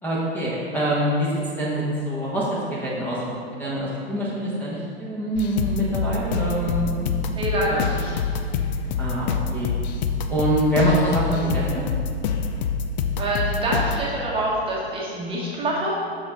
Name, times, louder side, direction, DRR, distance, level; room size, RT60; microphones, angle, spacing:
voice 1, 0.0-1.3 1.6-7.1 7.7-7.8 9.0-9.7 10.3-11.8, equal, 5° left, -7 dB, 1.4 m, -25 dB
sound 1, 5.3-14.0, left 6 dB, 45° left, 0.6 m, -26 dB
voice 2, 7.3-8.1 13.2-15.9, right 1 dB, 15° right, -5 dB, 1.5 m, -26 dB
7.6 x 6.3 x 4.0 m, 2.4 s
figure-of-eight pair, 105°, 32 cm